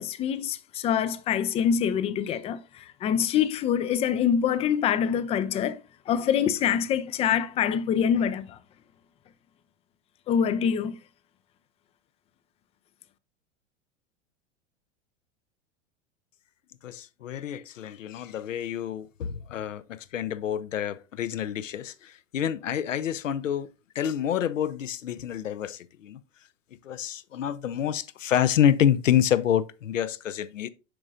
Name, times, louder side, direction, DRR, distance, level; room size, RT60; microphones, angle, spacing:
voice 1, 0.0-5.8 6.1-8.6 10.3-10.9, left 8 dB, 20° left, 0.3 m, -25 dB
voice 2, 16.8-23.7 24.0-26.2 26.8-30.7, left 10 dB, 80° left, 0.6 m, -27 dB
7.6 x 5.3 x 2.5 m
figure-of-eight pair, 85°, 37 cm